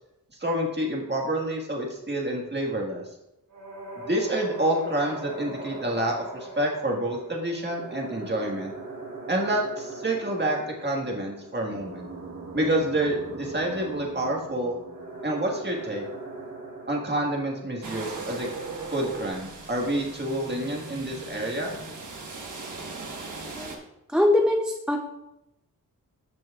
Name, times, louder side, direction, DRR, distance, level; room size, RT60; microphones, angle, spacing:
voice 1, 0.4-3.0 4.0-8.7 9.3-12.1 12.5-14.8 15.2-16.0 16.9-18.5 18.9-21.7, right 1 dB, 30° right, -1 dB, 1.7 m, -28 dB
sound 1, 3.5-19.3, right 3 dB, 85° right, 2.5 m, -40 dB
sound 2, 17.8-23.8, right 3 dB, 65° right, 1.3 m, -40 dB
voice 2, 24.1-25.0, left 1 dB, 5° right, 0 dB, 0.6 m, -22 dB
13.0 x 6.0 x 2.4 m, 0.87 s
wide cardioid pair, 120°, 33 cm